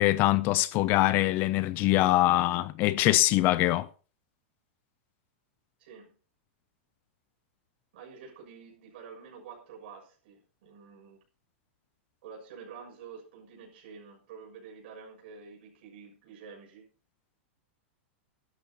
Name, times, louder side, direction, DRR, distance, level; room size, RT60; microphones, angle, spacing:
voice 1, 0.0-3.9, left 17 dB, 30° left, 0.5 m, -23 dB
voice 2, 5.8-6.1 7.9-11.2 12.2-16.8, right 6 dB, 55° right, 6.6 m, -48 dB
16.5 x 12.5 x 2.9 m
supercardioid pair, 165°, 7 cm